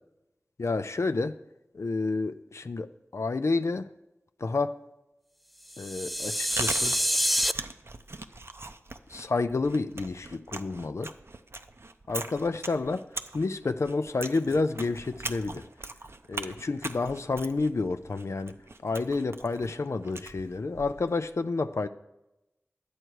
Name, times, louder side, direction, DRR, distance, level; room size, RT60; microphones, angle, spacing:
voice 1, 0.6-1.4 1.7-3.9 4.4-4.8 5.8-7.0 9.1-11.1 12.1-13.0 13.3-15.6 16.3-18.5 18.8-21.9, left 3 dB, 70° left, 10 dB, 0.4 m, -29 dB
sound 1, 5.7-7.5, equal, ahead, 0.3 m, -27 dB
Chewing mastication, 6.1-21.2, right 2 dB, 55° right, 0.5 m, -41 dB
11.0 x 7.9 x 4.6 m, 0.94 s
wide cardioid pair, 40°, 5 cm